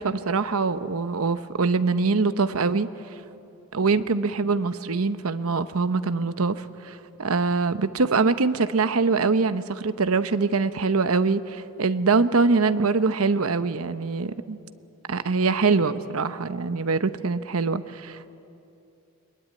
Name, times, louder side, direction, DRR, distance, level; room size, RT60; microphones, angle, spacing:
voice 1, 0.0-2.9 3.7-14.6 15.1-18.3, right 4 dB, 85° right, 12 dB, 0.8 m, -23 dB
22.5 x 21.5 x 9.5 m, 2.8 s
head